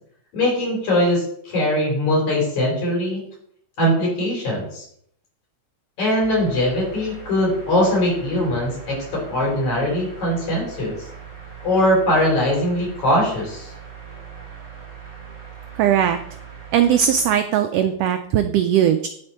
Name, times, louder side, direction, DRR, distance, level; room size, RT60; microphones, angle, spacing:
voice 1, 0.3-3.2 3.8-4.8 6.0-10.9 11.6-13.7, left 1 dB, 75° left, -3 dB, 4.7 m, -21 dB
sound 1, 6.2-17.3, right 6 dB, 15° right, 1.3 m, -40 dB
voice 2, 15.8-16.2 16.7-19.1, right 9 dB, 90° right, 8 dB, 1.4 m, -19 dB
9.8 x 4.3 x 4.5 m, 0.68 s
omnidirectional pair, 3.3 m